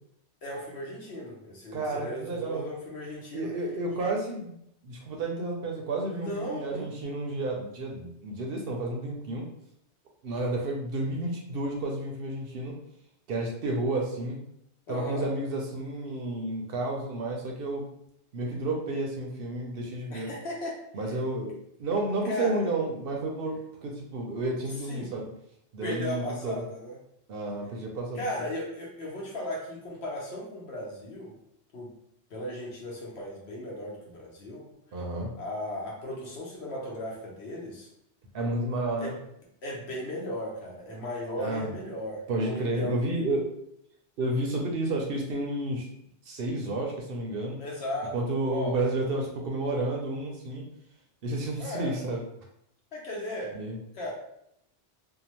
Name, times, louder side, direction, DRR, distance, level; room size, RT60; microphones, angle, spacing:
voice 1, 0.4-3.5 6.1-6.9 14.9-15.3 20.1-20.8 22.2-22.6 24.9-25.1 25.8-27.0 28.1-31.3 31.7-31.9 32.3-34.6 35.4-37.9 39.0-39.1 39.6-43.0 47.6-48.1 48.5-48.8 51.6-52.0 52.9-53.5 53.9-54.1, left 1 dB, 70° left, -3 dB, 1.0 m, -36 dB
voice 2, 1.7-2.6 3.3-4.6 4.8-9.4 10.2-12.7 13.3-14.4 14.9-17.8 18.3-20.3 20.9-21.5 21.8-25.3 25.7-26.6 27.3-28.2 34.9-35.3 38.3-39.1 41.4-41.8 42.3-43.5 44.2-45.8 46.3-47.6 48.1-50.6 51.2-52.2 53.5-53.8, right 2 dB, 65° right, 0 dB, 0.7 m, -31 dB
2.7 x 2.1 x 2.9 m, 0.76 s
omnidirectional pair, 1.2 m